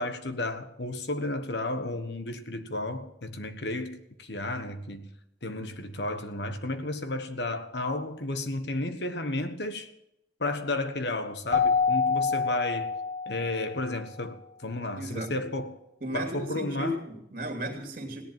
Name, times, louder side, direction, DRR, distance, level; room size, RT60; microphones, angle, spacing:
voice 1, 0.0-5.1 5.4-9.9 10.4-12.9 13.3-15.7 16.1-17.0 17.6-17.7, left 2 dB, 65° left, 1.4 m, -33 dB
Keyboard (musical), 11.5-13.8, left 5 dB, 40° left, 1.8 m, -26 dB
voice 2, 15.0-15.4 16.0-18.2, right 1 dB, 50° right, 2.9 m, -35 dB
17.0 x 11.0 x 7.3 m
head